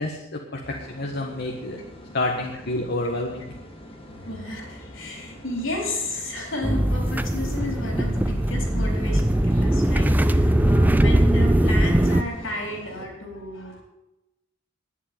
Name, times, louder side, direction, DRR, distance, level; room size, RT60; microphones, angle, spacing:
voice 1, 0.0-1.8 2.1-3.4, left 2 dB, 55° left, 1 dB, 1.6 m, -28 dB
sound 1, 0.6-13.1, equal, 30° left, 2.6 m, -45 dB
voice 2, 4.1-13.8, left 1 dB, 70° left, 2 dB, 4.3 m, -33 dB
sound 2, 6.6-12.2, right 1 dB, 10° right, 0.6 m, -20 dB
11.5 x 10.0 x 9.2 m, 0.95 s
head